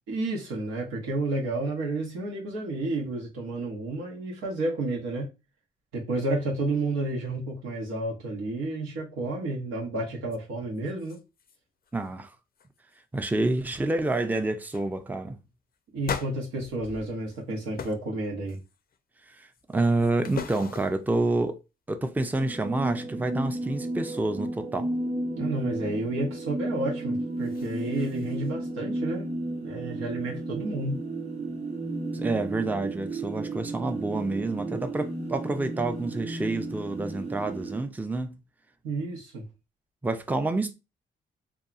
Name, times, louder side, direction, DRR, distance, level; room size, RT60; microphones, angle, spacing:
voice 1, 0.1-5.3 5.9-11.2 15.9-18.6 25.4-29.3 29.6-31.0 38.8-39.4, right 2 dB, 90° right, 0.9 m, -31 dB
sound 1, 10.3-10.4 10.7-11.6 11.8-12.2 12.5-13.0 13.6-13.7 14.0-14.2 14.7-14.9 16.0-17.4 17.8-18.1 18.5-19.0 19.5-21.1 27.1-28.5, left 7 dB, 50° left, 0.5 m, -40 dB
voice 2, 11.9-12.3 13.1-15.4 19.3-21.6 21.9-24.9 32.1-38.4 40.0-40.7, right 2 dB, 10° right, 0.4 m, -28 dB
sound 2, 22.3-37.8, right 2 dB, 35° right, 0.8 m, -33 dB
2.8 x 2.3 x 2.4 m
supercardioid pair, 55°, 20 cm